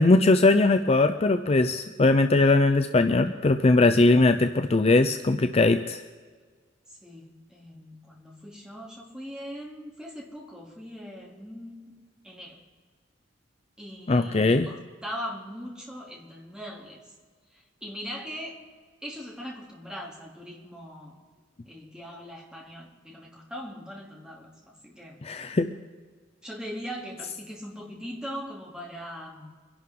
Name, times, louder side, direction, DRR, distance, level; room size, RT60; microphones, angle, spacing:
voice 1, 0.0-6.0 14.1-14.7 25.2-25.7, left 2 dB, 35° left, 8 dB, 0.5 m, -20 dB
voice 2, 7.0-12.0 12.2-12.6 13.8-14.8 15.0-17.0 17.8-18.6 19.0-21.2 21.6-25.2 26.4-29.5, equal, 5° right, -3 dB, 2.9 m, -40 dB
24.5 x 11.5 x 3.8 m, 1.5 s
head